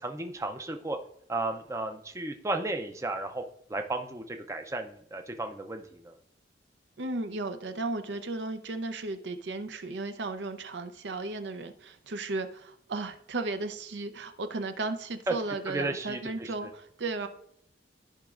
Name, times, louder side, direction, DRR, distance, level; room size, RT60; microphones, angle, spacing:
voice 1, 0.0-1.0 1.3-3.4 3.7-6.1 15.3-15.4 15.7-16.2, right 2 dB, 15° right, 6 dB, 0.5 m, -33 dB
voice 2, 7.0-17.3, right 3 dB, 70° right, 8 dB, 0.6 m, -35 dB
13.5 x 5.2 x 2.4 m, 0.70 s
head